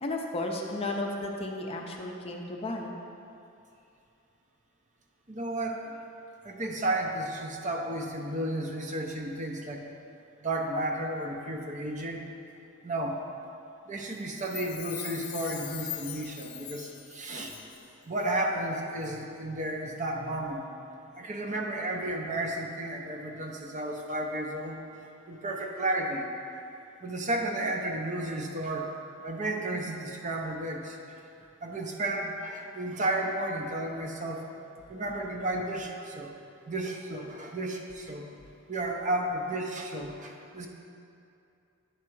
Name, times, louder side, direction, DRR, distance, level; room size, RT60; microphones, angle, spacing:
voice 1, 0.0-3.0, left 2 dB, 25° left, 1 dB, 0.5 m, -33 dB
voice 2, 5.3-5.8 6.4-9.9 10.4-12.2 12.8-13.2 13.9-17.6 18.1-20.7 21.2-26.3 27.0-28.9 29.2-31.0 31.6-34.5 34.9-36.3 36.7-38.3 38.7-40.7, right 1 dB, 35° right, 1 dB, 0.6 m, -33 dB
Chime, 14.3-17.9 18.2-18.3, left 12 dB, 85° left, 0.5 m, -41 dB
9.8 x 3.6 x 4.5 m, 2.6 s
head